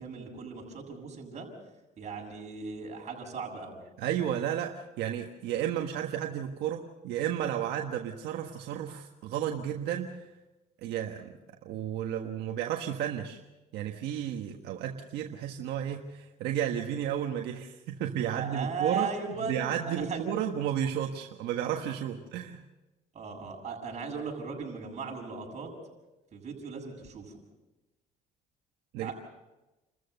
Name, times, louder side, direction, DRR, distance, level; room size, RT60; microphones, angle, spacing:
voice 1, 0.0-1.5 2.0-3.8 18.3-20.2 23.1-25.7 26.3-27.4 29.0-29.1, right 5 dB, 45° right, -1 dB, 7.1 m, -37 dB
voice 2, 4.0-10.1 10.8-11.3 11.6-13.4 13.7-19.1 19.4-22.6 28.9-29.1, right 10 dB, 80° right, 3 dB, 1.5 m, -32 dB
29.5 x 14.0 x 6.7 m, 1.0 s
cardioid pair, 110°, 17 cm